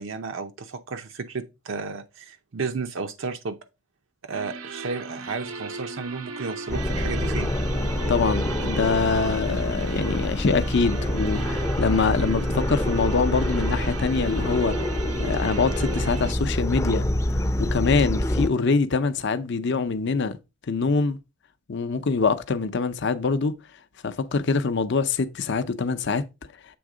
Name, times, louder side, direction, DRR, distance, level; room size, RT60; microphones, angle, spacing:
voice 1, 0.0-3.6 4.2-7.5, right 4 dB, 65° right, 0.6 m, -33 dB
sound 1, 4.3-16.3, right 4 dB, 85° right, 0.9 m, -37 dB
sound 2, 6.7-18.5, left 1 dB, 15° left, 0.5 m, -26 dB
voice 2, 8.1-14.8 15.2-17.1 17.4-20.4 20.7-21.2 21.7-23.5 24.0-26.2, left 4 dB, 55° left, 0.6 m, -24 dB
7.8 x 3.6 x 4.9 m
head